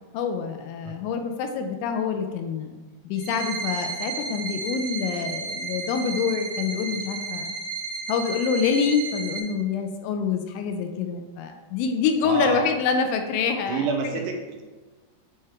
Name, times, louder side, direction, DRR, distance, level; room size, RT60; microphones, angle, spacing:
voice 1, 0.1-2.7 3.1-7.6 8.1-13.9, left 6 dB, 85° left, 6 dB, 2.9 m, -26 dB
sound 1, 3.2-9.4, right 4 dB, 70° right, 3.5 m, -33 dB
voice 2, 12.2-12.7 13.7-14.6, right 4 dB, 85° right, 2 dB, 3.0 m, -28 dB
9.5 x 3.4 x 3.5 m, 1.3 s
omnidirectional pair, 5.5 m